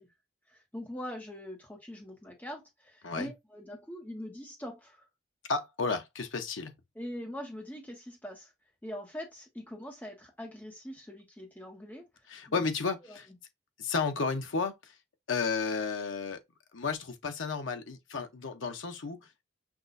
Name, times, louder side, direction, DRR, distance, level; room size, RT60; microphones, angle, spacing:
voice 1, 0.5-5.1 6.9-8.5 8.8-12.1 12.5-12.6 13.1-13.4, equal, 10° left, 1.1 m, -43 dB
voice 2, 5.5-6.7 12.3-13.3 13.8-14.9 15.3-16.4 16.7-19.2, left 4 dB, 85° left, 0.8 m, -32 dB
5.8 x 2.5 x 2.6 m
head